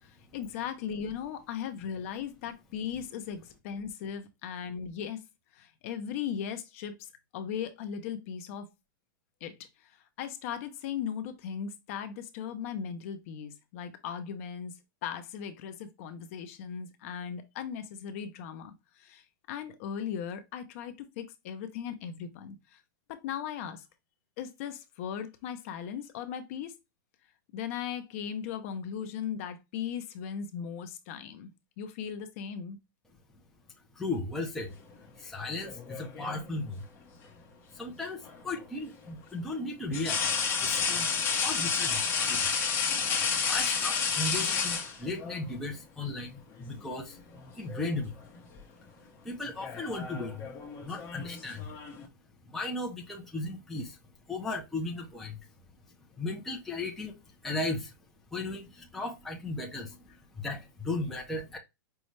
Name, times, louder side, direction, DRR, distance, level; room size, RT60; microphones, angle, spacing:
voice 1, 0.0-5.2 5.5-8.7 9.4-22.8 23.1-23.9 24.4-26.7 27.5-31.5 31.8-32.8, left 8 dB, 40° left, 0.7 m, -38 dB
voice 2, 33.9-34.7 35.2-36.8 37.7-40.2 40.6-41.1 41.4-42.4 43.5-47.2 47.5-48.1 49.2-50.4 50.8-51.7 52.4-54.0 54.3-55.4 56.2-57.9 58.3-61.6, left 2 dB, 5° left, 0.5 m, -36 dB
sound 1, 35.6-36.5 38.2-38.4 39.9-45.4 46.6-46.8 47.2-47.9 48.2-48.6 49.4-52.1, left 6 dB, 20° left, 1.0 m, -31 dB
5.3 x 2.3 x 3.1 m
supercardioid pair, 160°, 11 cm